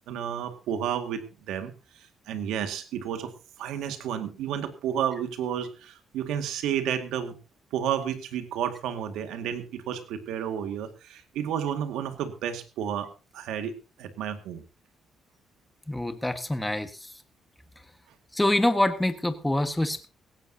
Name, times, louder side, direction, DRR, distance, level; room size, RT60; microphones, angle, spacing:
voice 1, 0.1-3.3 3.6-7.4 7.7-13.7 14.0-14.6, right 9 dB, 90° right, 7 dB, 2.1 m, -31 dB
voice 2, 15.9-17.1 18.3-20.1, left 1 dB, 10° left, 8 dB, 1.6 m, -26 dB
17.5 x 16.0 x 2.9 m, 0.32 s
cardioid pair, 90°, 0 cm